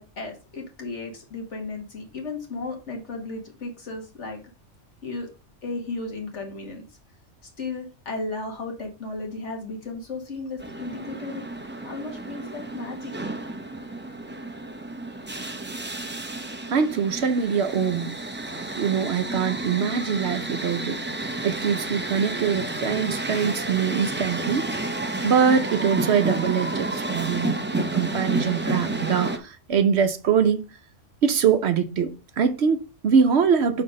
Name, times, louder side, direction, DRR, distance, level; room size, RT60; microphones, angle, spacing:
voice 1, 0.0-4.4 5.0-5.3 5.6-6.8 7.6-11.4 11.8-13.1, left 3 dB, 70° left, 2.0 m, -34 dB
sound 1, 10.6-29.4, right 2 dB, 15° right, 0.5 m, -31 dB
voice 2, 16.7-18.1 18.8-21.0 21.4-25.0 25.2-30.6 31.2-33.8, right 6 dB, 65° right, 0.9 m, -23 dB
5.7 x 4.2 x 5.2 m
omnidirectional pair, 1.3 m